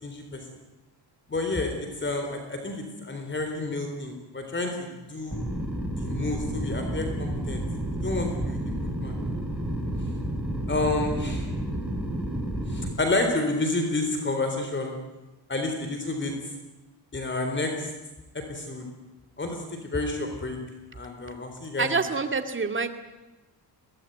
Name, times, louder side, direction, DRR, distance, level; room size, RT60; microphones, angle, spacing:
voice 1, 0.0-0.4 1.3-5.4 6.0-7.6 8.0-8.6 9.0-9.3 10.7-11.5 12.7-14.9 15.5-16.3 17.1-17.9 18.3-18.9 19.4-20.6 20.9-21.9, left 2 dB, 25° left, 4 dB, 3.8 m, -30 dB
sound 1, 5.3-12.9, right 1 dB, ahead, 5.0 m, -30 dB
voice 2, 21.8-22.9, right 4 dB, 30° right, 7 dB, 2.4 m, -26 dB
22.5 x 19.0 x 9.3 m, 1.1 s
cardioid pair, 105°, 42 cm